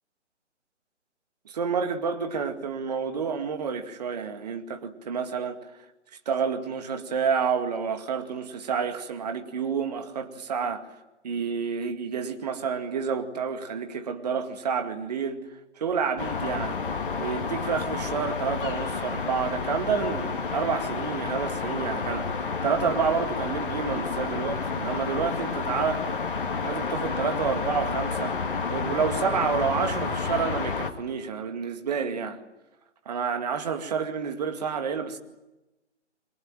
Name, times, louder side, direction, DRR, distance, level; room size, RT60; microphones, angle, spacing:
voice 1, 1.5-5.6 6.3-10.9 11.2-15.4 15.8-16.8 17.2-26.1 26.6-28.4 28.7-32.4 33.1-35.2, right 6 dB, 35° right, 2.2 m, -29 dB
sound 1, 16.2-30.9, left 5 dB, 45° left, 2.4 m, -30 dB
29.5 x 23.0 x 7.5 m
figure-of-eight pair, 140°, 36 cm